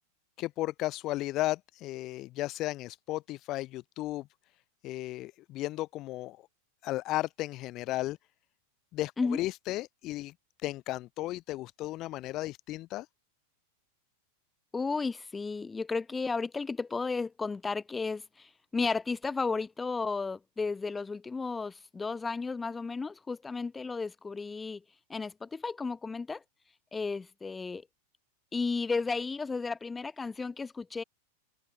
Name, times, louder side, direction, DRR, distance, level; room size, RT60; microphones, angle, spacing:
voice 1, 0.4-4.3 4.8-6.4 6.8-8.2 8.9-10.3 10.6-13.1, left 17 dB, 35° left, 0.7 m, -34 dB
voice 2, 14.7-24.8 25.1-26.4 26.9-27.9 28.5-31.0, left 4 dB, 15° left, 2.4 m, -33 dB
figure-of-eight pair, 90°, 0 cm